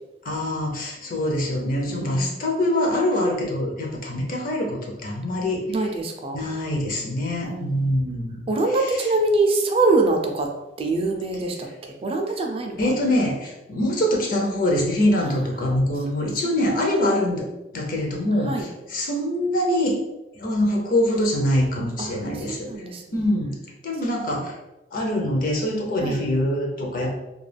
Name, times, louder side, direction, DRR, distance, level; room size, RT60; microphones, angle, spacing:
voice 1, 0.2-5.9 6.3-8.4 8.7-9.1 12.8-17.4 17.7-20.0 20.4-22.7 23.1-23.5 23.8-24.5 24.9-27.1, left 1 dB, 50° left, 0 dB, 0.5 m, -24 dB
voice 2, 2.0-2.3 5.7-6.4 7.4-7.9 8.5-10.5 10.8-11.5 12.0-12.7 18.5-18.6 22.0-22.1 22.6-23.0 26.0-26.2, right 2 dB, 30° right, 3 dB, 0.4 m, -23 dB
2.3 x 2.2 x 3.3 m, 0.98 s
head